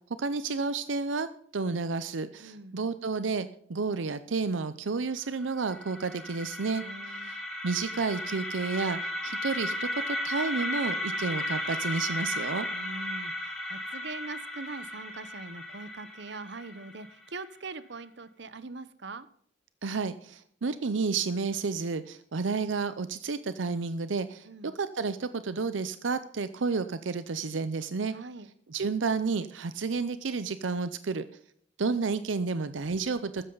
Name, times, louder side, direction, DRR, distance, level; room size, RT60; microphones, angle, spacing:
voice 1, 0.2-1.3 1.5-6.8 7.1-7.4 7.6-12.7 19.8-24.5 24.7-28.1 28.7-31.2 31.8-33.4, right 4 dB, 85° right, 12 dB, 0.6 m, -31 dB
voice 2, 2.4-2.8 6.8-7.3 12.7-19.3 24.4-24.7 28.1-28.5, right 3 dB, 65° right, 15 dB, 0.9 m, -42 dB
sound 1, 5.4-17.4, left 1 dB, ahead, 5.1 m, -35 dB
15.0 x 13.0 x 4.0 m, 0.63 s
head